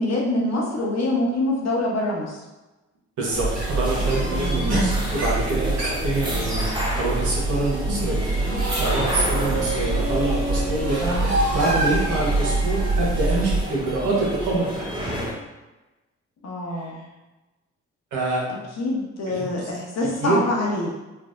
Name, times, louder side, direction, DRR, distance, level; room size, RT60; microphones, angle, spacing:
voice 1, 0.0-2.4 4.2-4.7 16.4-17.0 18.8-20.9, left 2 dB, 55° left, -3 dB, 1.0 m, -25 dB
sound 1, 3.2-15.3, equal, 15° right, 0.9 m, -31 dB
voice 2, 3.2-8.5 8.8-14.9 18.1-18.4 19.3-19.6 20.2-20.4, right 2 dB, 75° right, -5 dB, 1.2 m, -26 dB
sound 2, 3.3-13.6, right 2 dB, 60° right, 1.4 m, -25 dB
3.3 x 2.6 x 2.5 m, 1.1 s
supercardioid pair, 45°, 31 cm